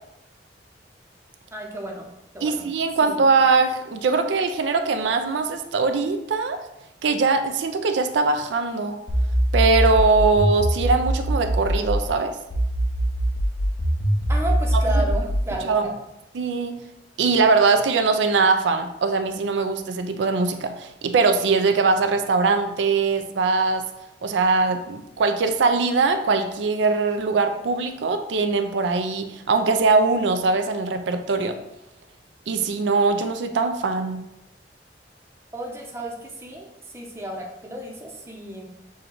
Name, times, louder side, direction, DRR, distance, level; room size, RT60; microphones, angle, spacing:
voice 1, 1.5-2.0 2.3-2.7 3.0-3.2 14.3-15.9 35.5-38.7, right 1 dB, 15° right, 0 dB, 0.7 m, -32 dB
voice 2, 2.4-6.6 7.0-9.0 9.5-12.4 15.0-15.1 15.6-15.9 16.3-16.7 17.2-23.8 24.2-31.6 32.5-34.2, right 4 dB, 85° right, 7 dB, 0.4 m, -21 dB
sound 1, 9.1-12.1 12.5-15.5, equal, 70° left, 0.8 m, -22 dB
6.3 x 2.3 x 3.8 m, 0.88 s
head